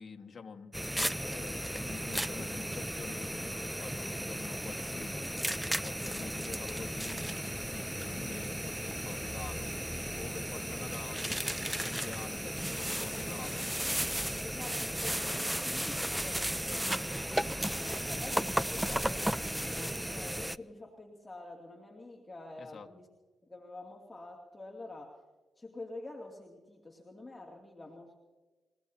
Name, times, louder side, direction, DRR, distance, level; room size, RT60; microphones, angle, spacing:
voice 1, 0.0-13.7 22.6-22.9, left 5 dB, 45° left, 2 dB, 1.6 m, -47 dB
sound 1, 0.7-20.6, equal, 5° right, 0.6 m, -35 dB
voice 2, 14.4-16.9 17.6-23.1 23.4-25.2 25.6-28.2, left 2 dB, 20° left, 0 dB, 2.5 m, -47 dB
29.5 x 17.0 x 2.8 m, 1.2 s
hypercardioid pair, 50°, 0 cm